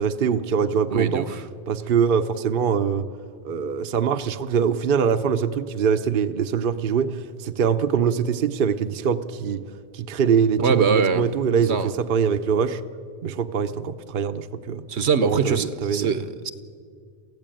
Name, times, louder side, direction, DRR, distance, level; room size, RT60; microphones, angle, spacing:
voice 1, 0.0-1.3 1.7-3.1 3.4-9.6 9.9-12.8 13.2-14.8 15.2-16.2, right 7 dB, 55° right, 8 dB, 0.9 m, -23 dB
voice 2, 0.9-1.4 10.6-11.2 11.6-11.9 14.9-16.5, right 5 dB, 75° right, 12 dB, 1.2 m, -23 dB
23.0 x 15.5 x 9.0 m, 2.1 s
omnidirectional pair, 1.1 m